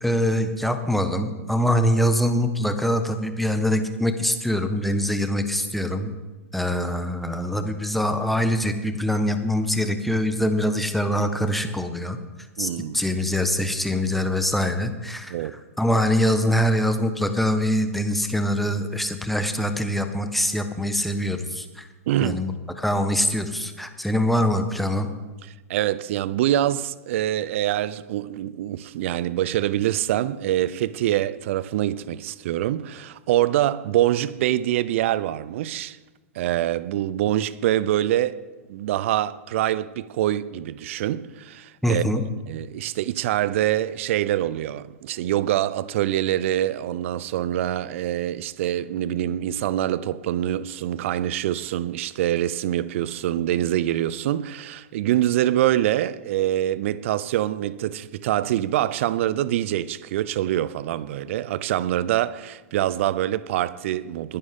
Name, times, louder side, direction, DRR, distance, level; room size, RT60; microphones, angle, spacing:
voice 1, 0.0-6.1 6.5-12.2 12.6-15.4 15.8-21.9 22.2-22.5 22.8-25.1 41.8-42.2, equal, ahead, 1.3 m, -24 dB
voice 2, 12.6-13.0 15.3-15.5 22.1-22.4 25.7-36.0 36.3-38.4 38.7-64.4, right 13 dB, 60° right, 0.7 m, -25 dB
21.0 x 11.0 x 3.8 m
hypercardioid pair, 105°, 8 cm